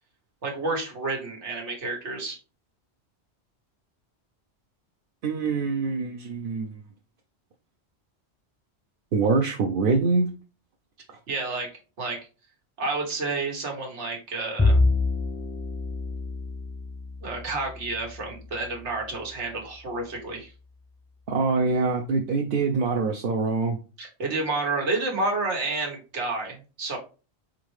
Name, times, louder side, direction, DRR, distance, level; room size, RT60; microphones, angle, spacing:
voice 1, 0.4-2.4 11.3-11.7 12.0-12.2 12.8-14.8 17.2-20.5 24.0-27.0, right 3 dB, 90° right, 1 dB, 1.5 m, -30 dB
voice 2, 5.2-6.7 9.1-10.3 21.3-23.8, right 4 dB, 60° right, 2 dB, 0.7 m, -24 dB
Bowed string instrument, 14.6-19.2, left 3 dB, 20° left, 0.4 m, -27 dB
4.4 x 3.8 x 3.1 m, 0.34 s
omnidirectional pair, 1.1 m